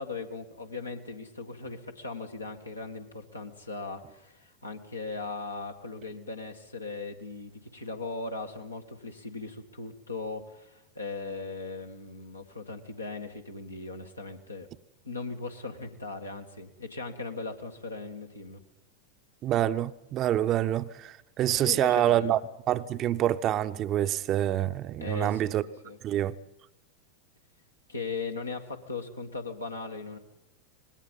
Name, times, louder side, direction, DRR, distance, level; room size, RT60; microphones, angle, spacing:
voice 1, 0.0-14.7 15.0-18.6 21.5-22.3 25.0-25.5 25.8-26.0 27.9-30.2, left 3 dB, 85° left, 1.9 m, -38 dB
voice 2, 19.4-22.4 22.7-25.6 26.0-26.4, right 12 dB, 35° right, 0.7 m, -26 dB
25.0 x 20.0 x 5.5 m
figure-of-eight pair, 90°, 0 cm